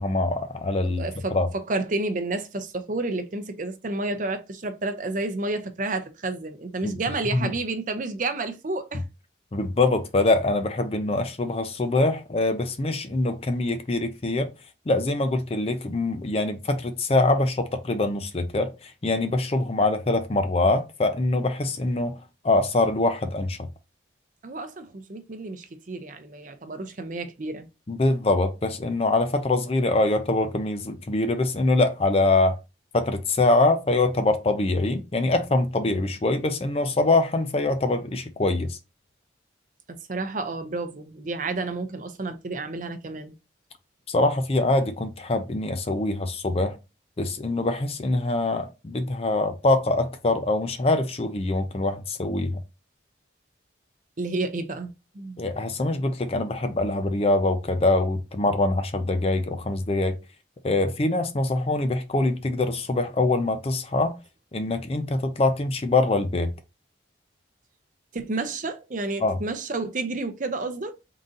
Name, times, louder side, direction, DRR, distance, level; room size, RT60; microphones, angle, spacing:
voice 1, 0.0-1.1 1.3-1.5 6.8-6.9 7.3-7.5 9.5-14.5 14.9-22.2 22.4-23.7 27.9-32.6 32.9-38.8 44.1-46.8 47.2-52.6 55.4-60.2 60.6-64.2 64.5-66.5 69.2-69.4, left 2 dB, 30° left, 0.5 m, -24 dB
voice 2, 0.8-9.0 24.4-27.7 40.1-43.3 54.2-55.4 68.1-71.0, right 2 dB, 40° right, 0.6 m, -30 dB
3.8 x 2.7 x 3.7 m
head